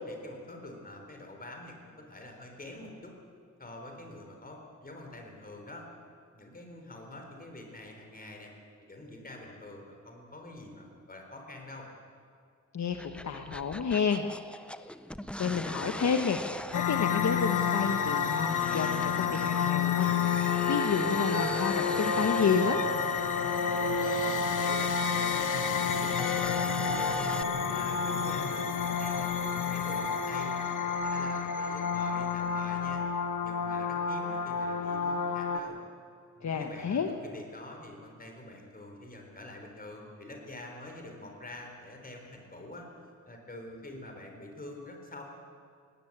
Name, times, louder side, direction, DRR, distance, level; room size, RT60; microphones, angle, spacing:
voice 1, 0.1-3.1 3.6-5.9 6.3-8.5 8.8-11.9 23.8-29.3 29.7-33.0 33.4-35.8 36.4-42.9 43.3-45.2, left 1 dB, 30° left, 2 dB, 4.1 m, -46 dB
voice 2, 12.7-14.3 15.4-16.4 16.7-22.8 36.4-37.1, left 6 dB, 65° left, 5 dB, 1.2 m, -30 dB
sound 1, 12.9-27.4, left 1 dB, 5° left, 0.6 m, -42 dB
sound 2, 16.7-35.6, left 6 dB, 80° left, 1.4 m, -30 dB
sound 3, 19.8-32.6, right 1 dB, 85° right, 5.5 m, -40 dB
20.5 x 16.5 x 8.7 m, 2.3 s
wide cardioid pair, 125°, 30 cm